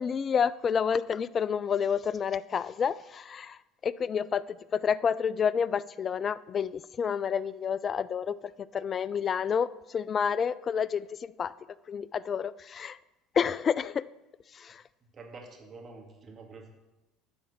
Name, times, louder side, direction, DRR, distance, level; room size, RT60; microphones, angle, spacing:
voice 1, 0.0-11.5 11.9-13.0 13.4-14.0 14.5-14.8, left 7 dB, 40° left, 19 dB, 0.3 m, -29 dB
voice 2, 15.1-16.7, right 3 dB, 40° right, 2 dB, 2.1 m, -47 dB
10.0 x 4.3 x 7.2 m, 1.0 s
hypercardioid pair, 75°, 0 cm